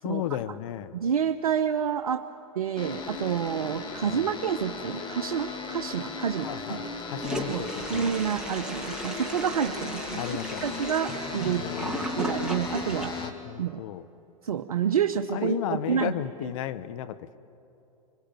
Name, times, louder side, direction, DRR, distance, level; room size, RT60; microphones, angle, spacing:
voice 1, 0.0-0.9 4.0-4.3 6.4-8.1 10.1-10.8 11.6-12.2 13.2-14.0 15.3-17.4, left 12 dB, 60° left, 13 dB, 0.9 m, -34 dB
voice 2, 0.9-2.2 2.5-6.8 7.5-7.6 7.9-11.9 12.2-13.2 13.6-13.8 14.4-16.5, right 8 dB, 80° right, 6 dB, 0.8 m, -29 dB
sound 1, 2.8-13.3, left 4 dB, 25° left, 2.6 m, -36 dB
Toilet flush, 7.2-13.3, right 1 dB, 5° right, 2.6 m, -36 dB
25.5 x 21.5 x 9.0 m, 2.9 s
hypercardioid pair, 100°, 19 cm